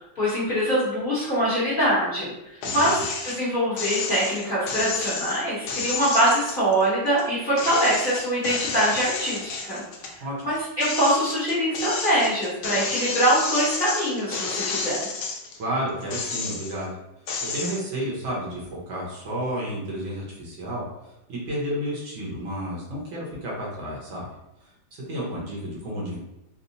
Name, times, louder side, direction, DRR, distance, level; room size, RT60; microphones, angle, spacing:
voice 1, 0.1-2.3 2.7-3.0 3.2-9.8 10.4-15.1, right 1 dB, 35° left, -11 dB, 1.0 m, -23 dB
sound 1, 2.6-3.4 3.8-7.2 7.6-10.2 10.6-15.6 16.0-16.8 17.3-17.8, left 4 dB, 70° left, 1.1 m, -31 dB
voice 2, 2.6-3.1 10.2-10.5 15.6-17.0 17.5-20.8 21.3-24.3 24.9-26.2, equal, 80° right, -5 dB, 1.8 m, -31 dB
4.2 x 2.1 x 2.7 m, 0.90 s
omnidirectional pair, 2.1 m